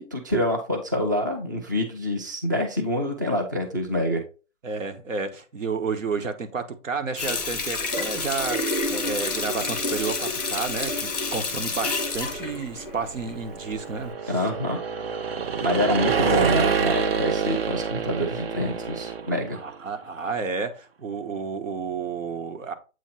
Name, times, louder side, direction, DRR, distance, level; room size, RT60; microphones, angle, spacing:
voice 1, 0.0-4.2 14.3-14.8 15.6-19.6, left 1 dB, 15° right, 0.4 m, -26 dB
voice 2, 4.6-14.4 19.5-22.7, right 4 dB, 80° right, 1.4 m, -31 dB
Water tap faucet, 7.2-13.5 13.9-14.1, left 3 dB, 5° left, 0.9 m, -28 dB
sound 1, 12.7-19.7, right 6 dB, 50° right, 0.7 m, -27 dB
8.1 x 2.9 x 4.3 m
hypercardioid pair, 155°, 38 cm